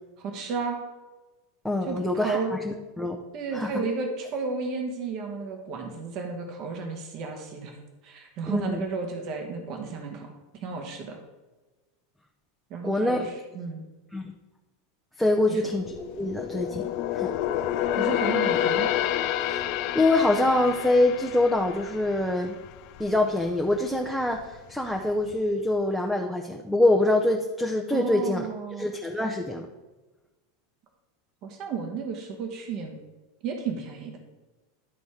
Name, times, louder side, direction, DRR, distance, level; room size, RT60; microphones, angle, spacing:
voice 1, 0.2-0.8 1.8-2.5 3.3-7.7 8.0-10.3 10.6-11.2 12.7-13.9 15.5-15.6 18.0-18.9 27.9-28.9 31.4-33.0 33.4-34.2, right 4 dB, 45° right, 3 dB, 1.3 m, -33 dB
voice 2, 1.6-3.2 3.5-3.7 8.5-8.8 12.8-13.2 14.1-14.3 15.2-16.8 17.1-17.3 19.4-19.6 19.9-22.6 23.0-28.4 28.7-29.7, left 2 dB, ahead, 1 dB, 0.7 m, -25 dB
sound 1, 15.6-23.1 23.5-23.7 24.3-25.0 25.3-25.4, left 11 dB, 50° left, 0.4 m, -29 dB
11.0 x 4.1 x 4.9 m, 1.2 s
figure-of-eight pair, 85°, 0 cm